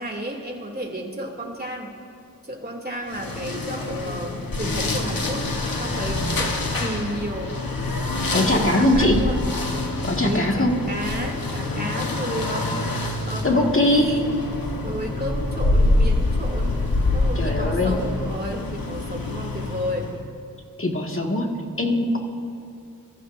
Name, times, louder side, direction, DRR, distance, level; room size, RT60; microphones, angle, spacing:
voice 1, 0.0-1.9 2.4-5.5 5.8-6.5 6.8-7.5 8.1-9.4 10.1-12.7 13.3-16.8 17.1-20.1, right 1 dB, 25° right, 0 dB, 2.7 m, -32 dB
sound 1, 3.1-20.2, left 2 dB, 75° left, 1.4 m, -26 dB
voice 2, 8.3-9.3 10.0-10.8 13.4-14.2 17.4-17.9 20.8-21.5 21.8-22.2, left 1 dB, 35° left, 1 dB, 2.0 m, -21 dB
25.0 x 14.5 x 2.7 m, 2.5 s
wide cardioid pair, 45°, 35 cm